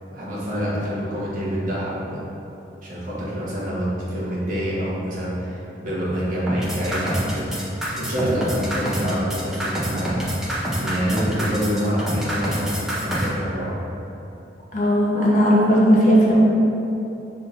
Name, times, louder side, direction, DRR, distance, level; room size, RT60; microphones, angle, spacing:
voice 1, 0.1-2.2 2.8-10.3 10.7-13.7, equal, 50° right, -8 dB, 1.2 m, -26 dB
sound 1, 6.5-13.3, right 1 dB, 5° right, 0.6 m, -26 dB
voice 2, 14.7-16.4, equal, 45° left, -5 dB, 0.8 m, -16 dB
5.8 x 3.6 x 2.5 m, 2.9 s
head